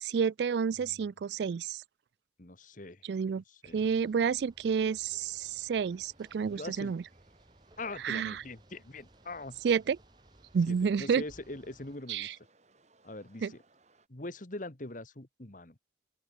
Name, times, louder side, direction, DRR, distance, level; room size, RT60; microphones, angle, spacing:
voice 1, 0.0-1.8 3.1-3.4 3.7-7.0 8.0-8.4 9.6-10.0 10.5-11.2 12.1-12.3 13.4-13.5, right 6 dB, 65° right, 0.3 m, -30 dB
voice 2, 2.4-3.0 3.5-3.8 6.5-6.9 7.8-9.6 10.7-12.3 13.0-13.6 14.1-15.8, left 2 dB, 45° left, 1.9 m, -43 dB
sound 1, 3.6-12.0, right 1 dB, 25° right, 1.7 m, -61 dB
sound 2, 4.9-14.1, right 3 dB, 40° right, 4.3 m, -66 dB
open air
head